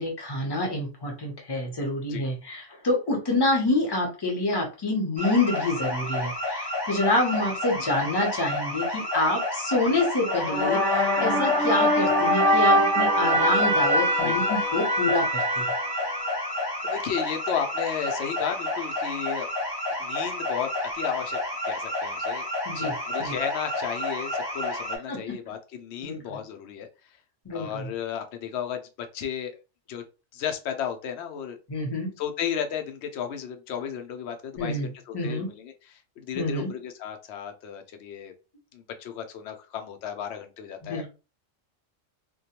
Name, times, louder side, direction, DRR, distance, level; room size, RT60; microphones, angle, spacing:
voice 1, 0.0-15.6 22.7-22.9 23.2-23.3 25.1-25.4 26.0-26.4 27.4-27.9 31.7-32.1 34.6-34.9 35.1-35.5 36.3-36.7 40.8-41.1, left 2 dB, 25° left, 0 dB, 0.6 m, -27 dB
sound 1, 5.2-25.0, left 2 dB, 30° right, 0.5 m, -30 dB
sound 2, 10.3-16.6, equal, ahead, 1.0 m, -23 dB
voice 2, 16.8-19.5 20.0-21.4 21.6-22.5 22.7-26.9 27.5-28.9 29.1-29.6 29.9-30.0 30.3-31.6 32.2-38.3 38.7-41.0, left 8 dB, 65° left, 6 dB, 0.8 m, -34 dB
2.2 x 2.2 x 2.8 m, 0.31 s
omnidirectional pair, 1.3 m